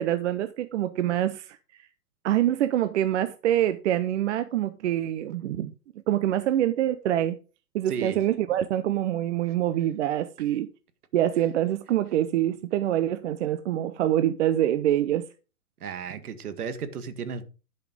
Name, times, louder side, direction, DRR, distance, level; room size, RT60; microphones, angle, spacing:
voice 1, 0.0-1.6 2.2-5.7 6.1-7.4 7.7-10.7 11.1-15.3, right 12 dB, 45° right, 0.8 m, -25 dB
voice 2, 7.9-8.2 15.8-17.4, right 6 dB, 65° right, 1.9 m, -34 dB
11.5 x 5.7 x 5.2 m
hypercardioid pair, 135°, 47 cm